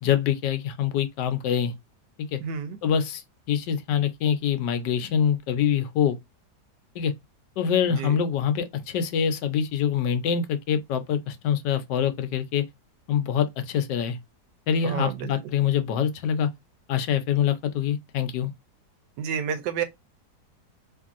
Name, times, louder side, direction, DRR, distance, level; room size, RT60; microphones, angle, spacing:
voice 1, 0.0-1.7 2.3-2.4 2.8-3.2 3.5-6.2 6.9-7.1 7.6-12.6 13.1-14.2 14.7-16.5 16.9-18.5, left 8 dB, 85° left, 1.3 m, -25 dB
voice 2, 2.4-2.8 7.9-8.2 14.8-15.3 19.2-19.8, right 7 dB, 80° right, 1.3 m, -30 dB
3.1 x 2.7 x 2.4 m
omnidirectional pair, 1.8 m